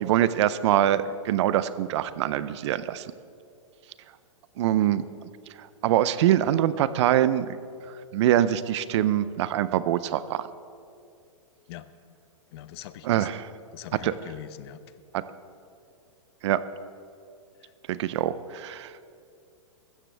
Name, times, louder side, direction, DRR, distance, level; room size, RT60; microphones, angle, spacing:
voice 1, 0.0-3.1 4.6-5.0 5.6-7.6 8.1-10.5 13.0-13.5 14.0-14.1 15.1-15.2 16.4-16.6 17.9-18.9, right 12 dB, 60° right, 15 dB, 0.6 m, -24 dB
voice 2, 12.5-13.3 13.7-14.8 17.6-17.7, left 13 dB, 50° left, 14 dB, 0.6 m, -42 dB
15.5 x 13.5 x 3.4 m, 2.5 s
hypercardioid pair, 130°, 17 cm